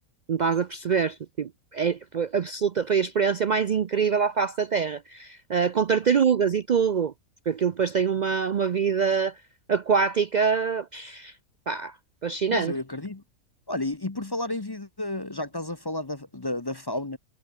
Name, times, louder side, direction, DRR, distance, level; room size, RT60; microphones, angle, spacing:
voice 1, 0.3-7.1 7.5-9.4 9.7-11.3 11.7-12.0 12.2-12.7, right 6 dB, 85° right, 0.4 m, -25 dB
voice 2, 12.5-13.2 13.7-17.2, left 2 dB, 20° left, 0.7 m, -31 dB
omnidirectional pair, 1.5 m